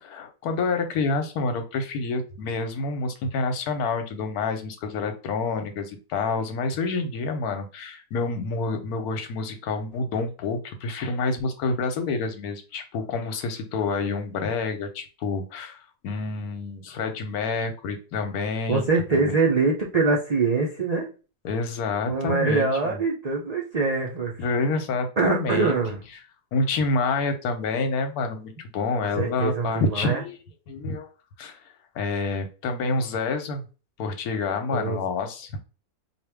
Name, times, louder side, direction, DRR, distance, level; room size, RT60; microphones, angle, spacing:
voice 1, 0.0-19.3 21.4-23.0 24.4-25.7 26.5-31.1 31.4-33.6 34.0-35.5, left 3 dB, 80° left, 7 dB, 1.2 m, -28 dB
voice 2, 18.7-21.1 22.1-24.4 25.2-26.0 29.2-30.2 34.7-35.0, right 4 dB, 70° right, -1 dB, 0.3 m, -24 dB
4.3 x 2.3 x 3.4 m, 0.34 s
omnidirectional pair, 1.6 m